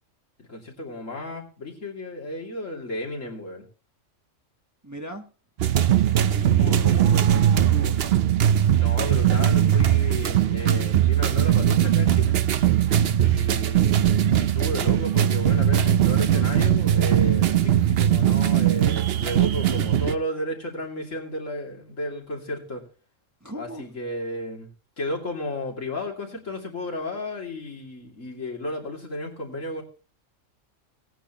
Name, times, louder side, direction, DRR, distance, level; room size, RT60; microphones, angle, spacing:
voice 1, 0.4-3.6 6.3-7.3 8.8-12.4 13.2-22.9 23.5-24.7 25.0-29.8, left 1 dB, 80° left, 0 dB, 3.0 m, -33 dB
voice 2, 4.8-5.2 6.3-8.0 23.4-23.8, equal, 15° right, 3 dB, 1.2 m, -37 dB
sound 1, 5.6-20.2, right 10 dB, 60° right, 0.8 m, -20 dB
18.5 x 9.1 x 3.0 m, 0.36 s
omnidirectional pair, 1.3 m